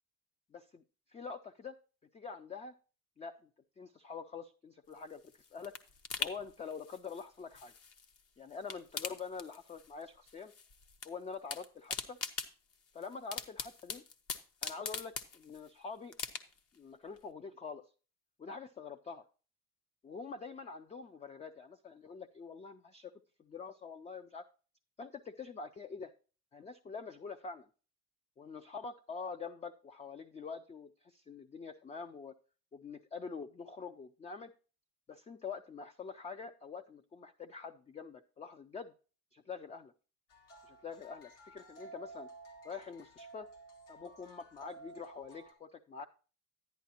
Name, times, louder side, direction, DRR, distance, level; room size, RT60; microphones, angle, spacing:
voice 1, 0.5-0.8 1.1-1.8 2.1-2.7 3.2-3.3 3.8-5.2 5.5-5.7 6.2-7.7 8.4-10.5 11.0-12.2 12.9-14.0 14.6-16.1 16.8-17.9 18.4-19.2 20.0-23.1 23.4-24.4 25.0-26.1 26.5-27.7 28.4-32.4 32.7-34.5 35.1-38.9 39.3-39.9 40.6-42.3 42.6-43.5 43.9-46.0, left 5 dB, 20° left, 8 dB, 0.4 m, -45 dB
sound 1, 4.9-8.2 8.5-10.0 10.3-11.1 11.3-15.7 16.1-16.8 17.2-17.3, left 5 dB, 50° left, 1.0 m, -42 dB
sound 2, 40.3-45.5, right 3 dB, 80° left, 2.3 m, -54 dB
10.5 x 10.5 x 2.8 m, 0.36 s
cardioid pair, 110°, 32 cm